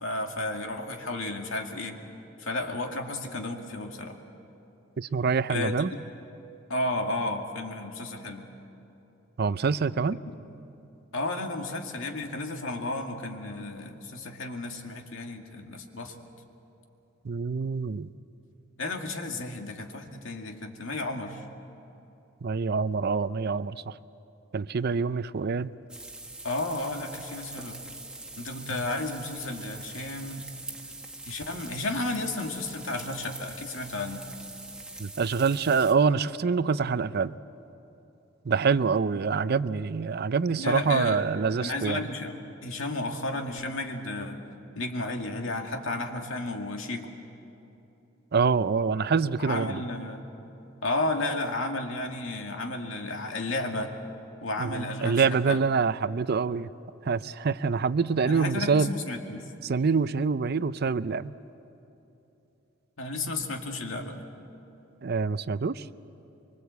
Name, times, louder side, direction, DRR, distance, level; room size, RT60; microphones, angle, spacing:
voice 1, 0.0-2.0 2.4-4.2 5.5-6.0 6.7-8.5 10.3-10.4 11.1-16.1 18.8-21.4 26.4-27.8 28.4-30.5 31.3-34.2 40.6-41.2 41.6-44.4 44.7-47.1 49.4-50.3 50.8-53.9 54.4-55.6 58.3-59.5 63.0-64.3, left 2 dB, 85° left, 3 dB, 2.2 m, -33 dB
voice 2, 5.0-5.9 9.4-10.2 17.2-18.1 22.4-23.9 24.5-25.7 28.7-28.8 35.0-37.3 38.5-42.0 48.3-49.8 54.6-56.7 57.1-58.9 59.6-61.3 65.0-65.8, right 5 dB, 55° right, 15 dB, 0.5 m, -26 dB
sound 1, 25.9-35.9, right 2 dB, 5° right, 1.6 m, -43 dB
25.0 x 24.0 x 8.2 m, 2.9 s
head